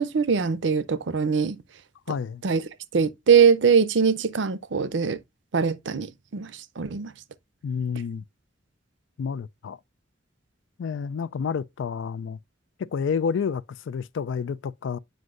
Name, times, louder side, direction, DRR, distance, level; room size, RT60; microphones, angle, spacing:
voice 1, 0.0-1.6 2.4-2.6 2.9-5.2 5.5-7.1, right 6 dB, 70° right, 0.6 m, -22 dB
voice 2, 2.1-2.4 7.6-8.2 9.2-9.8 10.8-12.4 12.8-15.0, left 6 dB, 80° left, 0.4 m, -29 dB
7.9 x 5.3 x 2.5 m
head